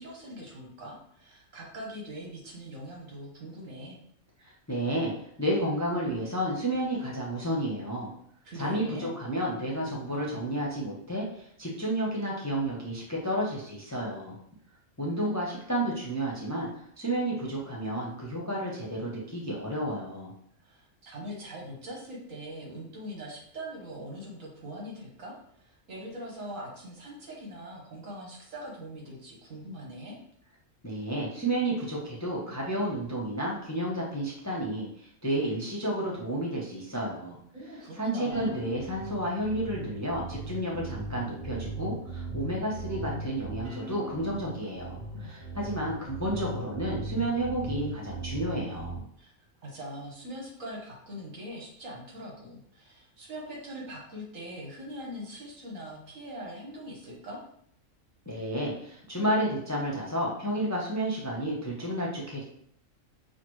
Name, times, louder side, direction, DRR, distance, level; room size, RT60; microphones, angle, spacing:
voice 1, 0.0-4.0 8.4-9.1 20.6-30.1 37.5-38.6 49.2-49.3 49.6-57.4, equal, 75° right, -2 dB, 1.6 m, -42 dB
voice 2, 4.4-5.1 5.4-8.1 8.5-14.4 15.0-20.3 30.8-37.4 38.0-49.0 58.3-62.4, right 1 dB, 15° left, -4 dB, 0.6 m, -31 dB
sound 1, 38.3-49.0, right 2 dB, 55° right, 1.1 m, -39 dB
6.0 x 2.4 x 3.1 m, 0.66 s
omnidirectional pair, 1.4 m